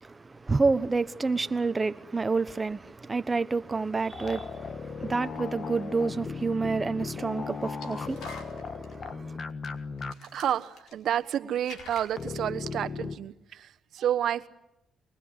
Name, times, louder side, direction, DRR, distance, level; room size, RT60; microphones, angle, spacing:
voice 1, 0.0-9.4, right 4 dB, 25° right, 1.2 m, -29 dB
sound 1, 4.1-10.1 10.4-10.5 12.2-13.2, left 5 dB, 50° left, 1.5 m, -37 dB
sound 2, 6.4-6.5 7.6-8.9 9.7-9.8 10.0-11.3 11.5-12.4, left 4 dB, 75° left, 4.5 m, -47 dB
voice 2, 10.3-14.5, right 10 dB, 70° right, 1.2 m, -30 dB
24.5 x 20.0 x 9.8 m
cardioid pair, 90°, 0 cm